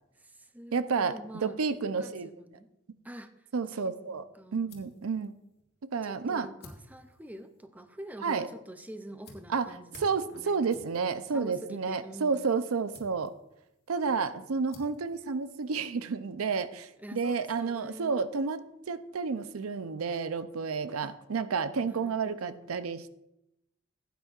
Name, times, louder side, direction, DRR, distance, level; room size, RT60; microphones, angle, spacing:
voice 1, 0.1-2.7 3.0-4.8 6.0-10.6 11.3-12.6 14.1-14.6 17.0-18.1 21.0-21.2 21.8-22.7, right 1 dB, 10° right, 9 dB, 0.4 m, -47 dB
voice 2, 0.7-2.3 3.5-4.2 4.5-5.3 5.8-6.5 8.2-8.5 9.5-9.7 10.0-13.3 13.9-23.1, right 5 dB, 90° right, 12 dB, 0.5 m, -31 dB
sound 1, 4.1-16.2, left 2 dB, 50° left, 1.8 m, -57 dB
15.5 x 9.2 x 2.4 m, 0.87 s
head